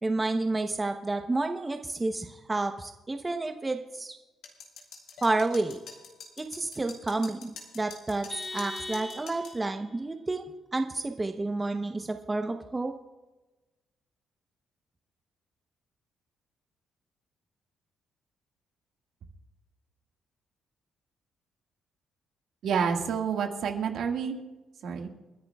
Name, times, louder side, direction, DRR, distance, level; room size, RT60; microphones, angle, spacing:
voice 1, 0.0-4.2 5.2-5.8 6.4-10.5 10.7-12.9, right 2 dB, 20° right, 6 dB, 0.8 m, -30 dB
sound 1, 4.4-9.6, left 5 dB, 80° left, 2.7 m, -46 dB
Vehicle horn car horn honking, 8.3-9.7, left 2 dB, 15° left, 0.6 m, -39 dB
voice 2, 22.6-24.4 24.8-25.1, right 6 dB, 70° right, 3 dB, 1.8 m, -29 dB
29.5 x 10.5 x 2.3 m, 1.1 s
cardioid pair, 90°, 0 cm